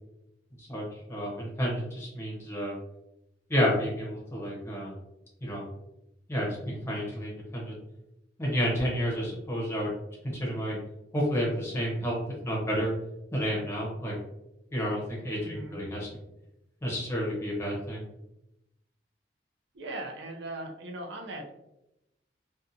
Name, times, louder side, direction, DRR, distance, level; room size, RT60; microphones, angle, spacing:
voice 1, 0.6-2.8 3.5-5.0 5.4-5.7 6.3-7.7 8.4-9.9 10.2-10.8 11.1-12.2 12.4-12.9 13.3-14.2 14.7-16.1 16.8-18.0, equal, 15° left, -4 dB, 0.7 m, -30 dB
voice 2, 15.4-15.8 19.7-21.5, right 2 dB, 85° right, 3 dB, 0.5 m, -39 dB
2.5 x 2.3 x 2.6 m, 0.87 s
head